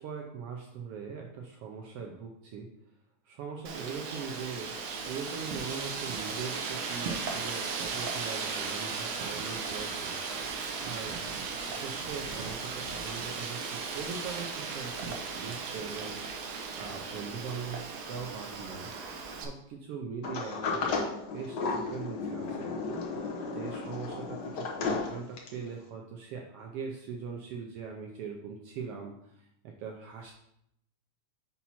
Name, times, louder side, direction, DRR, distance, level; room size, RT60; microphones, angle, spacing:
voice 1, 0.0-2.7 3.3-4.7 5.1-11.2 11.7-16.2 16.8-18.9 19.3-21.0 21.3-30.3, right 6 dB, 90° right, 1 dB, 1.3 m, -41 dB
Wind, 3.7-19.5, right 5 dB, 70° right, 1.7 m, -36 dB
Sliding door, 20.2-25.7, left 4 dB, 75° left, 0.9 m, -34 dB
5.8 x 5.6 x 4.2 m, 0.78 s
omnidirectional pair, 3.5 m